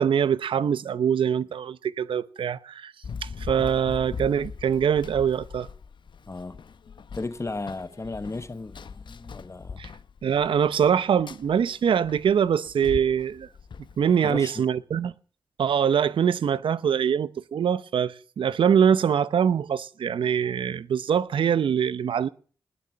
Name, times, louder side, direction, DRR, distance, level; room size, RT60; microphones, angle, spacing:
voice 1, 0.0-2.9 3.2-5.7 9.8-9.9 10.2-13.5 14.0-15.1 15.6-22.3, right 8 dB, 80° right, 0.7 m, -23 dB
Run, 3.0-14.4, left 5 dB, 70° left, 0.9 m, -41 dB
voice 2, 6.3-6.6 7.1-9.8 14.2-14.6, left 3 dB, 35° left, 1.1 m, -35 dB
19.5 x 7.0 x 8.9 m
cardioid pair, 45°, 9 cm